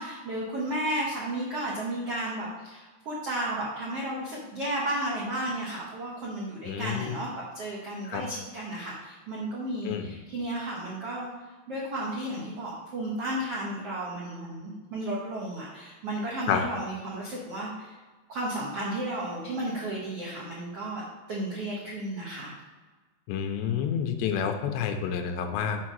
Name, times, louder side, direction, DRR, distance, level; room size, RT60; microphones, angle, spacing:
voice 1, 0.0-7.3 7.5-11.3 11.7-18.0 18.3-22.5, right 1 dB, 80° right, -5 dB, 1.3 m, -33 dB
voice 2, 6.7-7.1 8.1-8.2 9.8-10.1 16.5-16.6 23.3-25.8, left 8 dB, 85° left, 5 dB, 2.9 m, -29 dB
7.3 x 4.7 x 6.2 m, 1.3 s
omnidirectional pair, 5.0 m